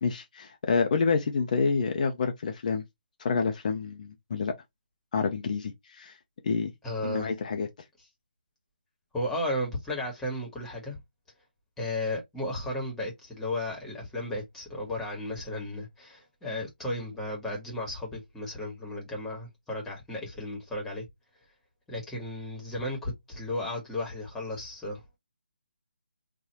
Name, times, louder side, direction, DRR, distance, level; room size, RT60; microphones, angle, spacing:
voice 1, 0.0-2.8 3.2-4.5 5.1-6.2 6.4-6.7 7.0-7.7, left 5 dB, 45° left, 0.7 m, -28 dB
voice 2, 6.8-7.3 9.1-11.0 11.8-21.1 21.9-25.0, left 1 dB, 5° left, 1.4 m, -34 dB
4.0 x 2.5 x 3.0 m
figure-of-eight pair, 150°, 6 cm